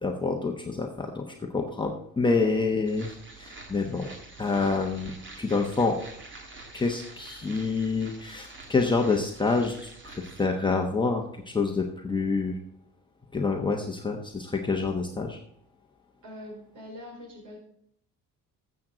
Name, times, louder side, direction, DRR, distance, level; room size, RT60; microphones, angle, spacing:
voice 1, 0.0-4.1 4.4-6.0 6.7-12.6 13.3-15.4, left 4 dB, 15° left, 1 dB, 1.0 m, -27 dB
sound 1, 2.8-10.5, right 3 dB, 35° right, 2.1 m, -47 dB
voice 2, 16.2-17.6, left 1 dB, 65° right, -1 dB, 5.0 m, -43 dB
14.0 x 7.6 x 3.9 m, 0.70 s
cardioid pair, 140°, 33 cm